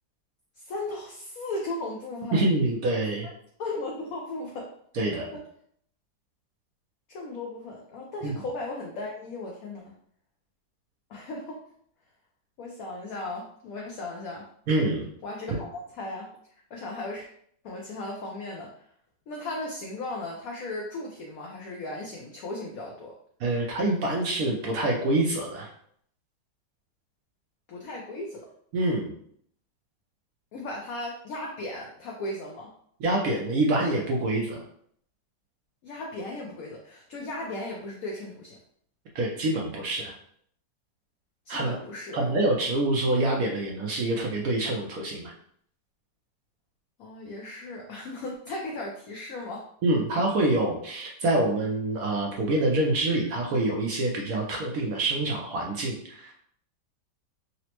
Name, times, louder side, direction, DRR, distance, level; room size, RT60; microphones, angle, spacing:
voice 1, 0.6-2.4 3.6-4.7 5.3-5.4 7.1-9.9 11.1-11.6 12.6-14.5 15.2-16.3 16.7-17.3 17.6-18.8 19.3-23.1 27.7-28.5 30.5-32.7 35.8-38.6 41.5-42.4 47.0-49.7, left 2 dB, 70° left, -1 dB, 0.8 m, -36 dB
voice 2, 2.3-3.3 4.9-5.3 8.2-8.3 14.7-15.1 15.5-15.6 23.4-25.7 28.7-29.1 33.0-34.6 39.1-40.1 41.5-41.7 42.1-45.3 49.8-56.3, right 2 dB, 70° right, -1 dB, 0.8 m, -26 dB
4.1 x 2.0 x 2.8 m, 0.64 s
omnidirectional pair, 1.9 m